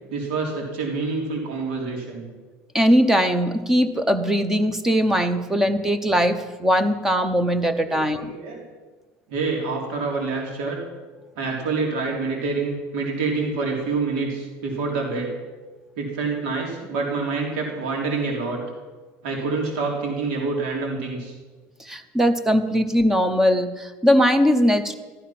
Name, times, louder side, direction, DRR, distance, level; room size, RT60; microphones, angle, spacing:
voice 1, 0.1-2.3 7.8-8.6 9.3-10.8 11.4-15.3 16.0-18.6 19.2-21.4, right 4 dB, 80° right, 0 dB, 3.5 m, -27 dB
voice 2, 2.7-8.3 21.8-24.9, equal, 5° right, 10 dB, 0.7 m, -20 dB
14.5 x 12.5 x 5.9 m, 1.3 s
cardioid pair, 175°, 6 cm